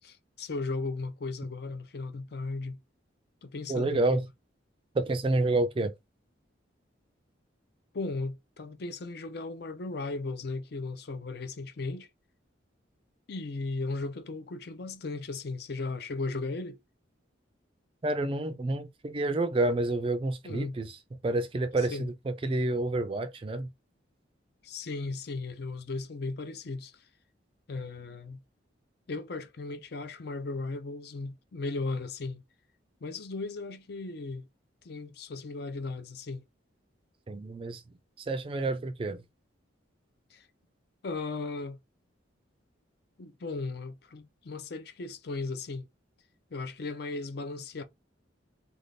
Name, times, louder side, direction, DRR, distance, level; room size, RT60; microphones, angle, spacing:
voice 1, 0.0-2.8 3.4-4.2 7.9-12.1 13.3-16.8 20.4-20.8 21.9-22.1 24.6-27.0 27.7-28.4 29.1-32.4 33.0-34.5 34.8-36.4 40.3-40.5 41.0-41.8 43.2-45.9 46.5-47.8, left 3 dB, 55° left, 0.5 m, -36 dB
voice 2, 3.7-4.3 4.9-5.9 18.0-21.0 21.2-23.7 37.3-37.8 38.2-39.2, right 2 dB, 25° right, 0.3 m, -29 dB
2.5 x 2.3 x 3.3 m
head